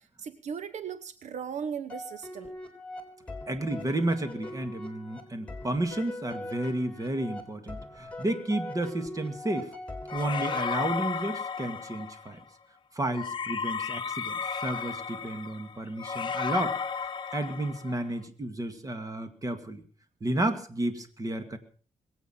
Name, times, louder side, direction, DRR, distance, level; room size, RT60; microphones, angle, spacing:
voice 1, 0.0-2.5, right 7 dB, 75° right, 12 dB, 0.9 m, -37 dB
sound 1, 1.9-11.2, left 1 dB, 10° left, 3.6 m, -42 dB
voice 2, 3.5-9.7 10.1-12.4 12.9-16.8 17.3-19.8 20.2-21.6, right 1 dB, 30° right, 8 dB, 2.1 m, -32 dB
sound 2, 10.1-12.3 13.1-18.0, left 5 dB, 40° left, 1.0 m, -33 dB
21.5 x 8.4 x 5.7 m, 0.42 s
cardioid pair, 95°, 12 cm